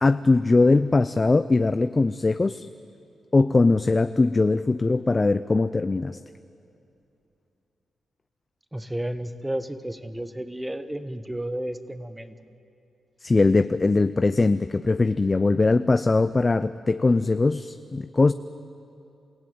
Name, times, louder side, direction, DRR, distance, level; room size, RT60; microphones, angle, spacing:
voice 1, 0.0-2.7 3.3-6.2 13.2-18.3, left 3 dB, 30° left, 12 dB, 0.5 m, -21 dB
voice 2, 8.7-12.3, right 1 dB, 10° right, 11 dB, 1.2 m, -32 dB
28.5 x 15.5 x 9.4 m, 2.7 s
cardioid pair, 90°, 0 cm